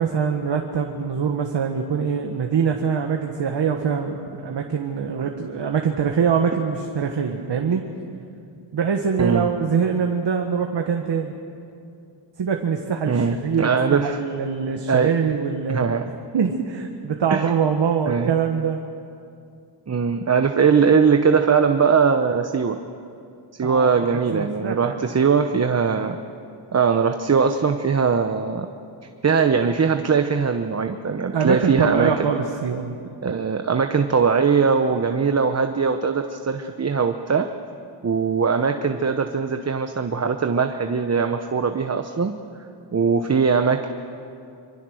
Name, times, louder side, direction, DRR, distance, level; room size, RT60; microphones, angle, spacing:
voice 1, 0.0-7.8 8.7-11.3 12.4-15.9 16.3-18.8 23.6-25.0 31.3-32.9, right 6 dB, 65° right, 3 dB, 1.5 m, -24 dB
voice 2, 9.2-9.5 13.1-14.2 14.9-15.1 15.7-16.1 17.3-17.5 18.1-18.3 19.9-22.8 23.6-26.2 26.7-28.7 29.2-32.3 33.2-37.5 38.0-42.3 42.9-43.9, right 5 dB, 35° right, 6 dB, 0.9 m, -20 dB
26.0 x 24.5 x 6.4 m, 2.5 s
wide cardioid pair, 125°, 45 cm